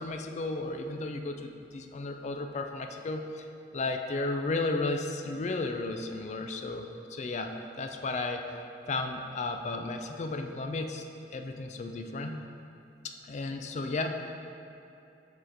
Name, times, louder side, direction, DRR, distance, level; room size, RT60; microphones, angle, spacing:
voice 1, 0.0-3.5 3.7-8.5 8.9-11.0 11.3-12.4 13.0-14.3, left 2 dB, 40° left, 5 dB, 0.4 m, -34 dB
7.7 x 3.0 x 4.8 m, 2.6 s
head